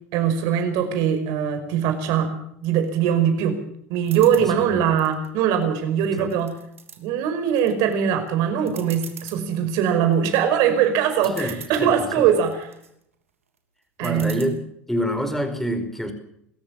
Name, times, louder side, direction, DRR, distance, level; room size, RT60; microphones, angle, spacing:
voice 1, 0.1-2.3 2.6-3.6 3.9-6.5 7.0-12.7 14.0-14.5, right 8 dB, 60° right, 7 dB, 5.3 m, -21 dB
sound 1, 4.0-4.5 5.0-5.8 6.2-7.0 7.5-7.9 8.3-8.4 8.7-9.4 9.9-10.3 10.8-10.9 11.1-11.9 12.4-12.9 14.0-14.4, right 7 dB, 85° right, 2.9 m, -41 dB
voice 2, 4.3-4.9 6.2-6.4 11.3-12.3 14.0-14.6 14.9-16.1, equal, 5° left, 7 dB, 4.9 m, -27 dB
27.0 x 14.5 x 7.3 m, 0.73 s
hypercardioid pair, 75°, 7 cm